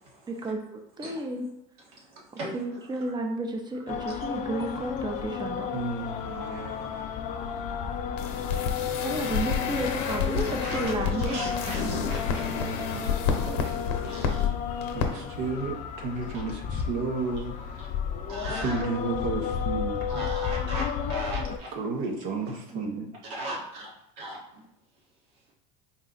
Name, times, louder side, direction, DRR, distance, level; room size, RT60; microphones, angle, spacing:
voice 1, 0.3-1.5 2.5-5.7 9.0-12.1 22.7-23.1, right 2 dB, 20° right, 3 dB, 0.7 m, -32 dB
voice 2, 1.9-2.5 7.4-7.5 10.3-10.8 11.2-12.6 13.4-13.8 14.0-14.5 15.1-15.3 18.3-18.9 20.1-21.7 22.5-22.6 23.2-24.4, right 1 dB, 80° right, -2 dB, 1.4 m, -38 dB
sound 1, 3.9-21.6, left 8 dB, 40° left, 0.4 m, -33 dB
voice 3, 5.7-6.9 12.5-13.1 14.9-17.8 18.5-20.2 21.7-23.1, right 3 dB, 65° right, 1 dB, 0.8 m, -33 dB
sound 2, 8.2-14.5 14.8-15.1 15.3-15.5, left 6 dB, 75° left, 0.7 m, -30 dB
4.1 x 2.3 x 3.8 m, 0.79 s
supercardioid pair, 120°, 19 cm